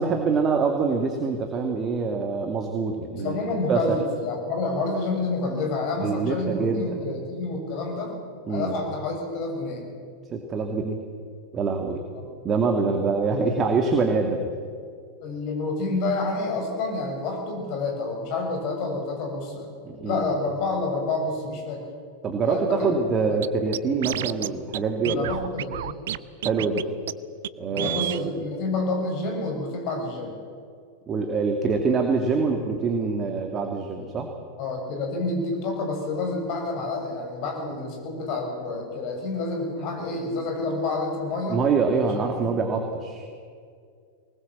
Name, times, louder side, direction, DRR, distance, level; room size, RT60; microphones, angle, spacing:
voice 1, 0.0-3.4 3.7-4.0 6.0-6.9 8.5-8.7 10.3-11.0 11.5-12.0 12.4-14.4 19.8-20.2 22.2-25.3 26.4-26.9 27.6-28.4 31.1-34.3 41.5-43.3, right 4 dB, 25° right, 4 dB, 2.2 m, -25 dB
voice 2, 3.2-8.1 8.5-9.8 15.2-19.7 20.0-21.9 22.4-22.9 23.3-23.4 25.2-26.0 27.7-30.4 34.6-41.6, left 3 dB, 45° left, 2 dB, 6.9 m, -28 dB
Scratching (performance technique), 23.4-23.5 23.7-24.5 24.7-24.8 25.1-26.2 26.4-26.8 27.1-27.2 27.4-27.5 27.8-28.2, right 12 dB, 60° right, 0.6 m, -29 dB
24.0 x 20.0 x 7.6 m, 2.2 s
figure-of-eight pair, 90°, 0 cm